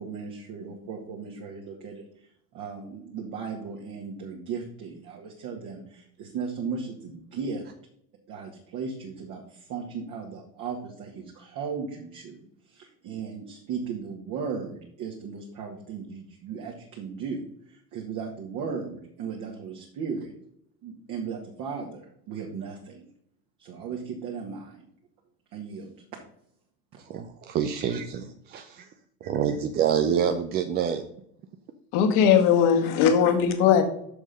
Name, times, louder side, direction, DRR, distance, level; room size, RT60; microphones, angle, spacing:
voice 1, 0.0-2.0 2.5-7.7 8.3-12.4 12.7-17.4 17.7-20.3 20.8-23.1 23.6-24.9 25.5-26.0, right 5 dB, 40° right, -1 dB, 1.9 m, -36 dB
voice 2, 27.0-28.9 29.2-31.0, right 8 dB, 20° right, 8 dB, 0.5 m, -27 dB
voice 3, 31.9-33.8, left 8 dB, 45° left, 6 dB, 1.9 m, -19 dB
7.0 x 6.4 x 5.2 m, 0.70 s
figure-of-eight pair, 85°, 50 cm